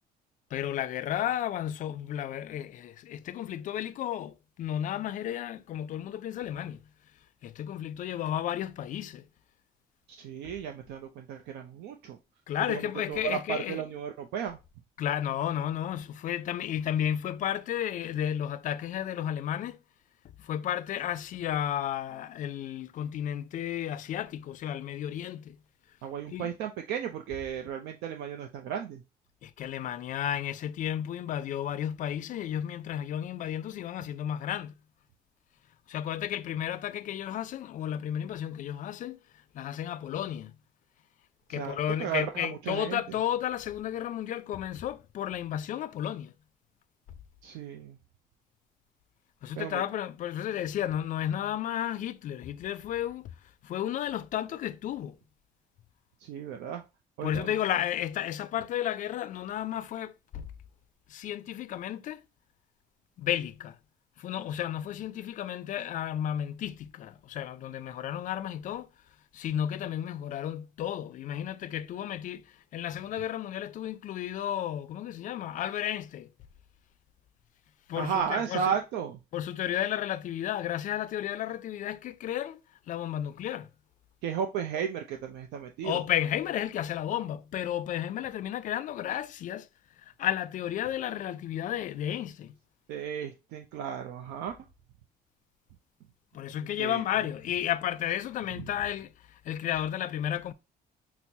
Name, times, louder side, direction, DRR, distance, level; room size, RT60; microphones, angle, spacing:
voice 1, 0.5-6.8 7.4-9.2 12.5-13.8 15.0-19.8 20.4-25.6 26.3-26.5 29.4-34.7 35.9-39.2 39.5-40.6 41.5-46.3 49.4-53.3 53.6-55.2 57.2-60.5 61.1-62.2 63.2-63.8 64.2-68.9 69.3-72.4 72.7-76.3 77.9-78.8 79.3-82.6 82.9-83.7 85.8-89.7 90.0-92.6 96.3-100.5, left 11 dB, 50° left, 0.4 m, -33 dB
voice 2, 10.1-12.2 12.7-14.6 26.0-29.0 41.5-43.0 47.4-48.0 49.6-49.8 56.2-56.8 57.2-57.5 78.0-79.2 84.2-86.0 92.9-94.6 96.5-97.0, right 8 dB, 85° right, 0.5 m, -34 dB
5.8 x 2.0 x 2.7 m
cardioid pair, 110°, 17 cm